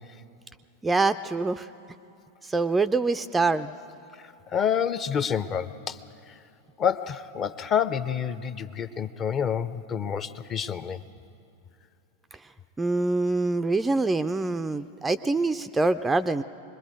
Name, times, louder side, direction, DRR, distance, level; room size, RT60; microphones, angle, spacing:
voice 1, 0.8-1.7 2.4-3.7 12.8-16.4, right 3 dB, 10° right, 11 dB, 0.4 m, -25 dB
voice 2, 4.2-6.0 6.8-11.0, left 8 dB, 25° left, 13 dB, 0.7 m, -28 dB
25.0 x 21.0 x 5.2 m, 2.6 s
figure-of-eight pair, 90°, 0 cm